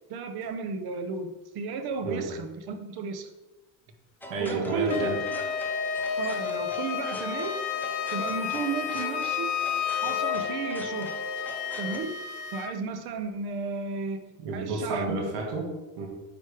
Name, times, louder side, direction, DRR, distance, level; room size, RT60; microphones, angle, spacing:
voice 1, 0.1-3.3 4.4-5.1 6.2-7.6 8.1-9.5 10.0-11.1 11.8-12.1 12.5-15.2, right 5 dB, 60° right, 7 dB, 1.0 m, -33 dB
sound 1, 4.2-12.0, left 1 dB, 5° left, 0.7 m, -41 dB
voice 2, 4.3-5.2 14.4-16.1, right 3 dB, 85° right, 0 dB, 1.8 m, -31 dB
Wind instrument woodwind instrument, 4.9-12.7, left 8 dB, 80° left, 0.9 m, -31 dB
9.1 x 3.5 x 4.9 m, 1.1 s
cardioid pair, 130°, 42 cm